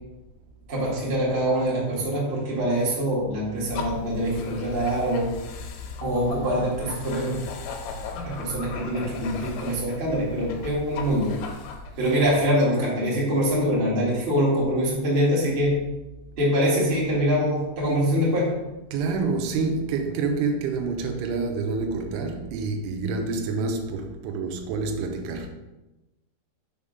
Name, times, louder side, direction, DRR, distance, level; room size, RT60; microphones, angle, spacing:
voice 1, 0.7-5.3 6.0-7.4 8.2-11.3 12.0-15.7 16.4-18.5, equal, 30° right, 0.9 m, -24 dB
sound 1, 3.7-12.4, left 4 dB, 80° left, 3.1 m, -37 dB
voice 2, 18.9-25.5, right 4 dB, 90° right, 3.2 m, -27 dB
6.9 x 3.6 x 5.3 m
omnidirectional pair, 5.3 m